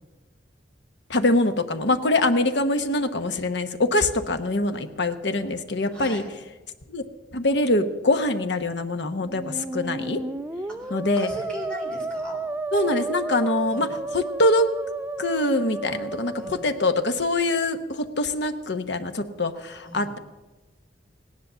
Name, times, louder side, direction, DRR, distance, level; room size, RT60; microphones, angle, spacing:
voice 1, 1.1-6.2 6.9-7.0 7.3-10.2 10.9-11.3 12.7-13.9 14.1-14.7 15.2-20.2, left 2 dB, 70° left, 9 dB, 1.1 m, -24 dB
voice 2, 5.9-6.3 10.8-12.4 13.7-14.0 16.4-16.6 19.8-20.1, equal, 5° left, -2 dB, 3.9 m, -38 dB
Musical instrument, 9.2-17.2, right 2 dB, 10° right, 0.5 m, -32 dB
17.0 x 10.5 x 6.8 m, 1.2 s
head